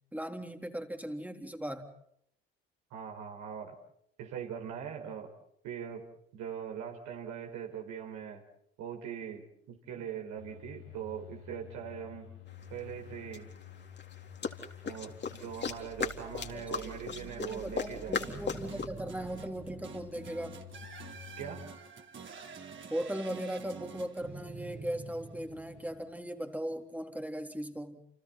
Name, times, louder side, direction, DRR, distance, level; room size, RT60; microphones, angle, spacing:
voice 1, 0.1-1.9 16.2-20.6 22.9-28.0, right 1 dB, 5° right, 5 dB, 3.7 m, -38 dB
voice 2, 2.9-3.8 4.2-5.3 5.6-6.0 6.3-8.4 8.8-12.3 12.7-13.5 14.8-18.3 21.4-21.6, right 8 dB, 60° right, 2 dB, 4.7 m, -41 dB
sound 1, 10.4-21.6, left 4 dB, 85° left, 6.0 m, -50 dB
sound 2, 12.6-12.7 13.3-18.9, left 5 dB, 35° left, 3.9 m, -37 dB
sound 3, 18.2-26.5, right 4 dB, 35° right, 4.2 m, -47 dB
30.0 x 29.5 x 4.3 m, 0.72 s
hypercardioid pair, 65°, 32 cm